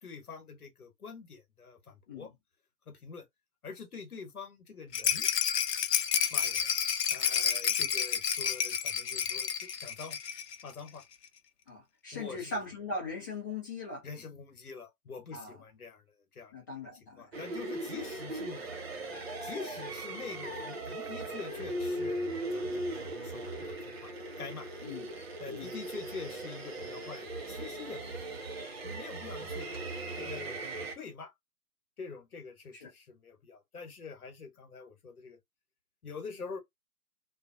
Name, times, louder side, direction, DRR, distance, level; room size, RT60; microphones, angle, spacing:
voice 1, 0.0-2.3 2.9-3.3 3.6-5.3 6.3-6.7 7.1-10.2 10.6-11.0 12.1-12.5 14.0-16.1 16.3-16.5 16.8-16.9 17.1-18.7 19.4-24.7 25.4-28.5 28.8-29.7 30.1-30.6 30.9-31.3 32.0-35.4 36.0-36.6, left 5 dB, 65° left, 1.1 m, -45 dB
Rattle, 4.9-10.6 10.9-11.0 11.2-11.3, left 8 dB, 80° left, 0.5 m, -30 dB
voice 2, 11.7-14.0 15.3-15.5 16.5-17.3 24.8-25.1 25.5-25.7 32.7-32.9, left 3 dB, 15° left, 0.6 m, -39 dB
sound 1, 17.3-30.9, right 1 dB, 40° right, 0.8 m, -38 dB
2.5 x 2.3 x 2.5 m
figure-of-eight pair, 135°, 47 cm